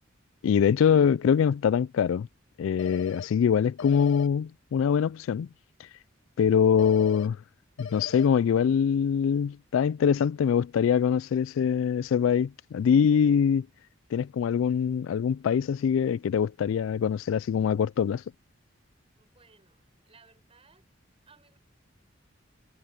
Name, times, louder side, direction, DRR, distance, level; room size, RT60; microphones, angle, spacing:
voice 1, 0.4-2.3 2.6-5.5 6.4-7.4 7.8-13.7 14.1-18.2, left 7 dB, 85° left, 0.3 m, -24 dB
sound 1, 2.8-3.3 3.8-4.3 6.8-7.3 7.8-8.3, left 5 dB, 70° left, 1.8 m, -39 dB
voice 2, 19.2-20.9 21.2-21.6, right 4 dB, 30° right, 7.5 m, -60 dB
head